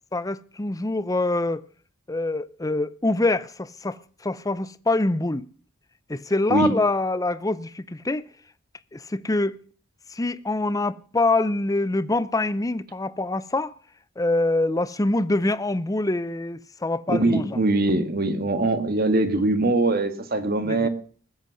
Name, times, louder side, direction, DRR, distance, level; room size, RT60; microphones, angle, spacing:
voice 1, 0.1-1.6 2.1-5.5 6.1-8.3 8.9-9.6 10.1-13.7 14.2-17.6 20.6-20.9, left 2 dB, 15° left, 0.6 m, -25 dB
voice 2, 17.1-20.9, right 2 dB, 45° right, 1.8 m, -22 dB
20.0 x 8.2 x 6.3 m
head